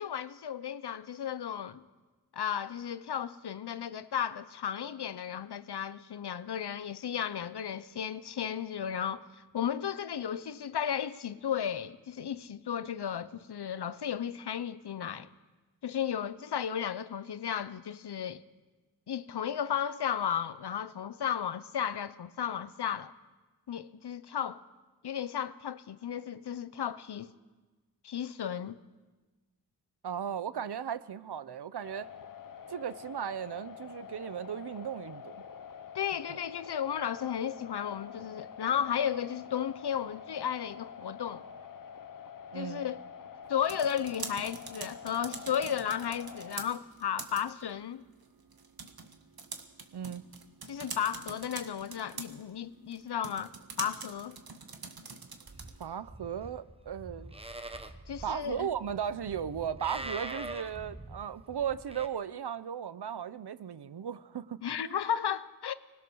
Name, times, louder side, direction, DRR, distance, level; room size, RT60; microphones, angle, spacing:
voice 1, 0.0-1.8 2.3-15.3 15.8-18.4 19.1-23.1 23.7-24.6 25.0-27.3 28.0-28.8 35.9-41.4 42.5-43.0 43.5-48.0 50.7-53.5 53.8-54.4 58.1-58.7 64.6-65.7, left 8 dB, 85° left, 0.9 m, -34 dB
voice 2, 30.0-32.1 32.7-35.4 42.5-42.8 49.9-50.2 55.8-57.4 58.2-65.0, right 8 dB, 85° right, 0.9 m, -36 dB
sound 1, 31.8-46.6, left 7 dB, 55° left, 0.9 m, -47 dB
sound 2, 43.4-55.9, right 4 dB, 65° right, 1.8 m, -45 dB
Livestock farm animals working animals, 55.5-62.1, right 2 dB, 15° right, 1.2 m, -44 dB
25.0 x 20.5 x 6.4 m
wide cardioid pair, 95°, 39 cm